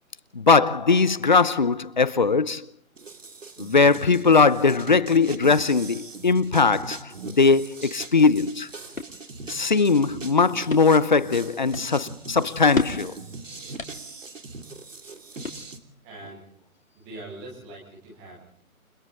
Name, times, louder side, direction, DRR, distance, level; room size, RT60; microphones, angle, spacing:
voice 1, 0.3-2.7 3.6-8.7 9.5-13.1, left 4 dB, 35° left, 0.8 m, -20 dB
sound 1, 2.9-15.8, right 3 dB, 60° right, 3.1 m, -41 dB
sound 2, 8.4-16.0, left 4 dB, 65° left, 3.4 m, -35 dB
voice 2, 16.0-16.5 16.9-18.6, right 2 dB, ahead, 0.8 m, -42 dB
29.5 x 22.5 x 4.0 m
figure-of-eight pair, 155°, 43 cm